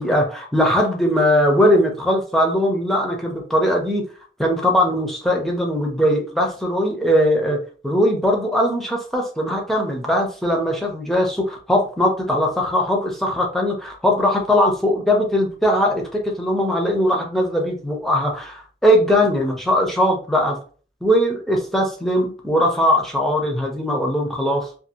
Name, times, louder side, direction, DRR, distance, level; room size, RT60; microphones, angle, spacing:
voice 1, 0.0-4.0 4.4-7.6 7.8-20.6 21.0-24.7, equal, ahead, 0 dB, 0.5 m, -20 dB
2.6 x 2.4 x 2.8 m, 0.40 s
head